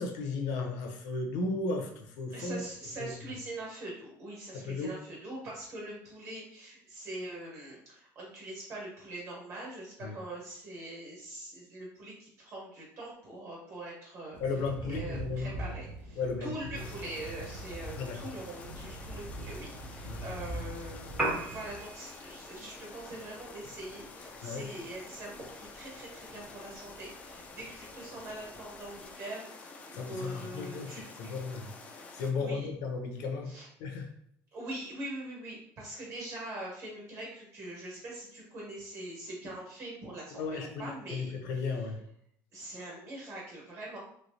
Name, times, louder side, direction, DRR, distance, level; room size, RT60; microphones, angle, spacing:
voice 1, 0.0-2.6 3.0-3.1 4.5-5.0 10.0-10.2 14.4-15.7 16.2-16.9 18.0-18.3 20.0-20.4 24.4-24.7 29.9-31.7 32.0-33.5 33.8-34.1 40.3-42.0, left 4 dB, 70° left, 3 dB, 0.7 m, -35 dB
voice 2, 2.3-14.4 14.8-31.0 32.4-32.7 33.5-33.7 34.5-41.3 42.5-44.0, right 1 dB, 40° right, -3 dB, 1.4 m, -43 dB
Thunder / Rain, 14.3-21.8, right 2 dB, 90° right, 0.6 m, -42 dB
sound 1, 16.7-32.3, left 3 dB, 20° left, 0.3 m, -49 dB
Piano, 21.1-29.1, right 2 dB, 15° right, 0.7 m, -42 dB
3.1 x 3.1 x 2.7 m, 0.69 s
cardioid pair, 175°, 7 cm